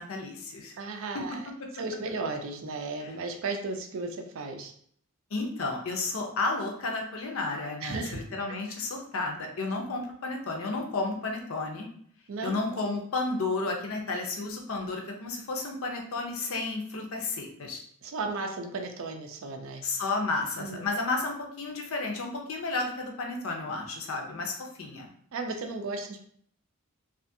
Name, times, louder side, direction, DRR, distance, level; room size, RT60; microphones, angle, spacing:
voice 1, 0.0-0.8 1.1-1.7 3.0-3.1 5.3-11.9 12.4-17.8 19.8-25.1, left 3 dB, 70° left, 1 dB, 0.6 m, -32 dB
voice 2, 0.8-1.4 1.8-4.7 7.8-8.2 12.3-12.6 18.0-19.8 20.6-20.9 25.3-26.2, right 3 dB, 65° right, 5 dB, 0.4 m, -35 dB
2.5 x 2.4 x 2.6 m, 0.63 s
head